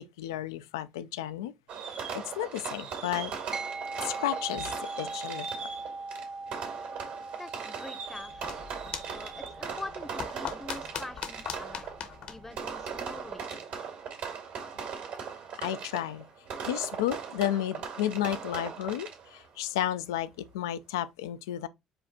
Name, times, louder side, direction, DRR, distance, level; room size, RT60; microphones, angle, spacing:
voice 1, 0.0-1.5 2.1-3.4 4.0-5.7 15.6-16.3 16.6-21.7, left 12 dB, 85° left, 0.3 m, -32 dB
Fireworks, 1.7-19.5, right 6 dB, 70° right, 1.9 m, -39 dB
sound 1, 3.5-13.2, right 3 dB, 30° right, 0.6 m, -42 dB
voice 2, 7.4-8.6 9.1-11.9 12.3-13.5, left 2 dB, 15° left, 0.7 m, -44 dB
sound 2, 8.1-13.4, left 8 dB, 65° left, 0.9 m, -42 dB
5.1 x 2.4 x 4.2 m
hypercardioid pair, 60°, 2 cm